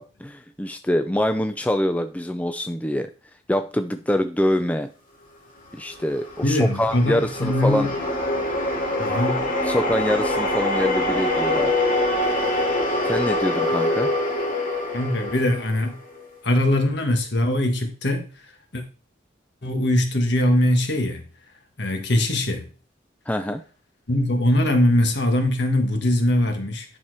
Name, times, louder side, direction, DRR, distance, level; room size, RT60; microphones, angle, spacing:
voice 1, 0.0-3.1 3.5-4.9 5.7-7.9 9.6-11.7 13.0-14.1 23.3-23.6, left 1 dB, 10° left, 0.4 m, -25 dB
sound 1, 5.9-16.3, left 1 dB, 45° left, 2.6 m, -24 dB
voice 2, 6.4-7.9 9.0-9.4 14.9-16.0 16.4-18.2 18.7-18.8 19.6-21.2 21.8-22.6 24.1-26.8, left 1 dB, 60° left, 1.6 m, -21 dB
10.0 x 4.4 x 4.8 m
head